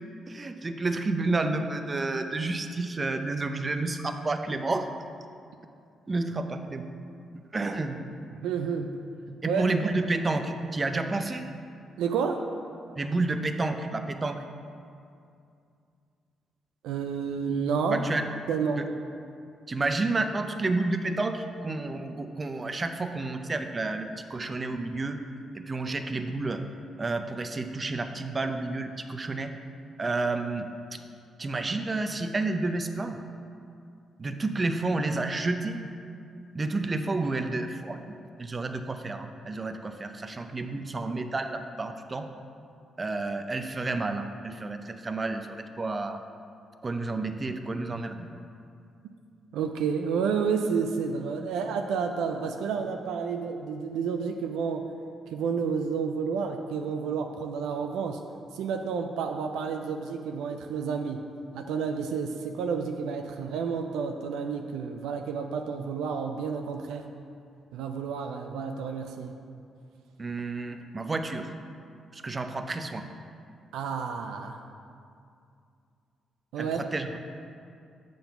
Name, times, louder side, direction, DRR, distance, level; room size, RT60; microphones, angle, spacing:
voice 1, 0.3-4.9 6.1-6.9 7.5-8.0 9.4-11.4 13.0-14.4 17.9-18.3 18.8-18.9 19.7-25.2 25.5-26.6 27.0-29.5 30.0-30.7 31.4-33.2 34.2-35.8 36.5-38.0 38.4-42.3 43.0-46.2 46.8-48.3 70.2-71.5 72.1-73.0 76.6-77.1, right 3 dB, 30° right, 6 dB, 0.5 m, -30 dB
voice 2, 8.4-9.0 9.4-9.6 12.0-12.4 16.8-18.0 18.5-18.8 49.5-54.9 55.3-58.2 58.5-61.2 61.5-67.1 67.7-69.3 73.7-74.6 76.5-76.8, right 6 dB, 90° right, 4 dB, 0.3 m, -30 dB
7.0 x 3.9 x 5.6 m, 2.4 s
cardioid pair, 80°, 0 cm